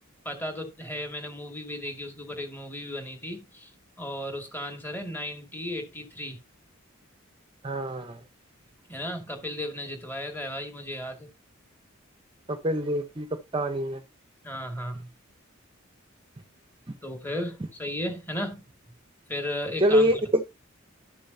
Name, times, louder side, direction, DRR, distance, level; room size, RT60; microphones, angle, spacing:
voice 1, 0.2-3.7 4.0-6.4 8.9-11.3 14.4-15.1 17.0-18.6 19.3-20.2, left 1 dB, 10° left, 2.1 m, -35 dB
voice 2, 7.6-8.2 12.5-13.3 13.5-14.0 19.8-20.5, equal, 25° right, 0.8 m, -25 dB
12.0 x 6.9 x 2.7 m
head